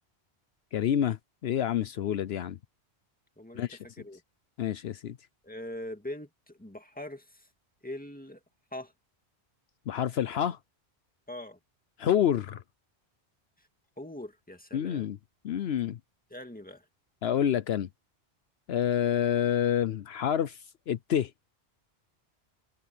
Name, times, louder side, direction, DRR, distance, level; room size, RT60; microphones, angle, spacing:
voice 1, 0.7-1.2 1.4-2.6 3.5-3.8 4.6-5.2 9.9-10.6 12.0-12.6 14.7-15.2 15.4-16.0 17.2-17.9 18.7-20.6 20.9-21.3, left 9 dB, 75° left, 0.9 m, -28 dB
voice 2, 3.4-4.2 5.4-7.5 7.8-8.4 8.7-8.9 11.3-11.6 14.0-15.1 16.3-16.8, left 1 dB, 10° left, 2.0 m, -42 dB
open air
omnidirectional pair, 1.1 m